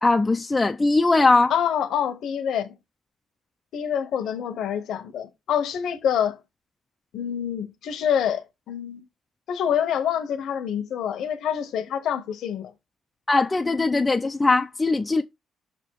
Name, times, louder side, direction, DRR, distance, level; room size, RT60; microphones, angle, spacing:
voice 1, 0.0-1.5 13.3-15.2, left 3 dB, 20° left, 0.4 m, -20 dB
voice 2, 1.5-2.7 3.7-6.4 7.1-9.0 9.5-12.7, left 9 dB, 75° left, 0.9 m, -26 dB
5.9 x 3.5 x 4.6 m
cardioid pair, 90°, 0 cm